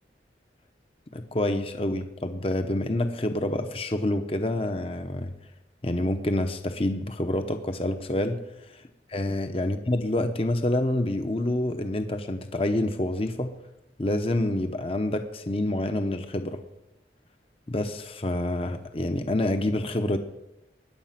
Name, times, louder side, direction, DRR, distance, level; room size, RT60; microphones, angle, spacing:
voice 1, 1.1-5.4 5.8-8.4 8.7-8.8 9.1-13.5 14.0-16.6 17.7-20.2, left 1 dB, 30° left, 7 dB, 0.9 m, -27 dB
22.0 x 10.0 x 5.9 m, 0.96 s
head